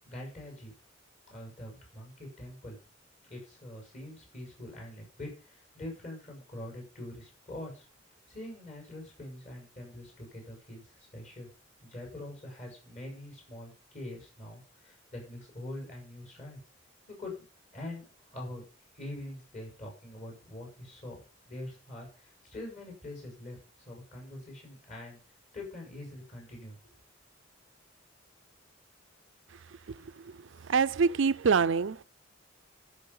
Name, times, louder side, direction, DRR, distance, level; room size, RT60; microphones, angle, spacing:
voice 1, 0.0-0.7 1.3-2.8 3.3-7.9 8.3-11.5 11.8-16.6 17.1-17.3 17.7-18.6 18.9-21.2 21.5-23.6 23.9-25.2 25.5-26.9, left 1 dB, 40° left, 6.6 m, -44 dB
voice 2, 30.7-32.0, right 5 dB, 75° right, 0.5 m, -25 dB
13.5 x 6.4 x 5.5 m
head